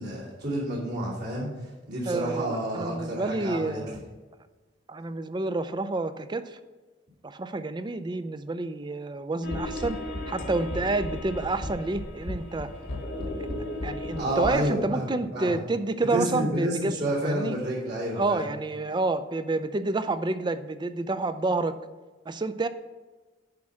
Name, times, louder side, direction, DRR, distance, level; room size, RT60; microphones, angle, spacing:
voice 1, 0.0-3.8 14.2-15.6 16.1-18.4, right 1 dB, 60° right, -6 dB, 2.6 m, -30 dB
voice 2, 2.1-4.0 4.9-6.6 7.2-10.0 10.3-12.7 13.8-17.6 18.2-21.8 22.3-22.7, right 2 dB, 25° right, 12 dB, 0.4 m, -29 dB
sound 1, 9.4-14.6, left 1 dB, 60° left, 1.2 m, -34 dB
10.5 x 3.6 x 6.3 m, 1.3 s
head